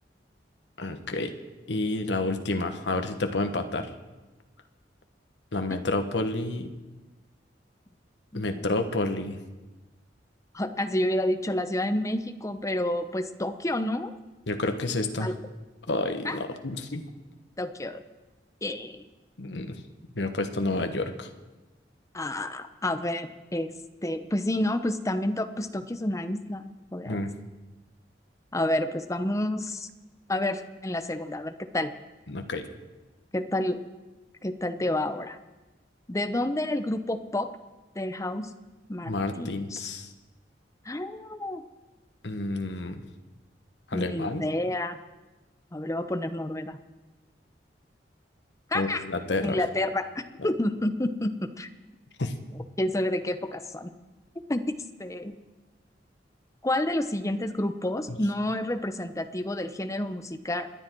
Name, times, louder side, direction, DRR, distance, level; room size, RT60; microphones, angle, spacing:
voice 1, 0.8-1.3 1.7-3.9 5.5-6.7 8.3-9.4 14.5-15.3 15.9-17.0 19.4-19.8 20.1-21.3 27.0-27.3 32.3-32.7 39.1-40.1 42.2-43.0 43.9-44.4 48.7-49.6 52.2-52.3 58.1-58.2, left 2 dB, 75° left, 6 dB, 1.4 m, -29 dB
voice 2, 8.3-8.7 10.5-14.1 15.2-15.3 16.2-16.4 17.6-18.0 18.6-19.0 22.1-23.7 24.0-27.2 28.5-29.9 30.3-31.9 33.3-33.8 34.4-35.4 36.1-37.5 37.9-38.5 38.9-39.9 40.8-41.6 43.9-45.0 45.7-46.8 48.7-49.0 49.4-51.7 52.8-53.9 54.5-54.7 55.0-55.3 56.6-60.7, left 1 dB, 20° left, 9 dB, 0.8 m, -29 dB
27.5 x 10.5 x 4.6 m, 1.1 s
head